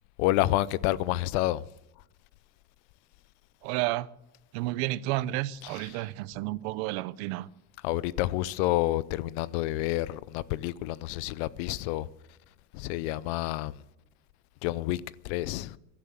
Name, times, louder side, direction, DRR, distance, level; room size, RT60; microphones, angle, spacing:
voice 1, 0.2-1.7 5.6-6.0 7.8-12.1 12.7-13.8 14.6-15.8, left 16 dB, 75° left, 0.7 m, -29 dB
voice 2, 3.6-4.1 4.5-7.5, right 17 dB, 75° right, 0.7 m, -31 dB
16.5 x 11.5 x 6.7 m
cardioid pair, 170°, 33 cm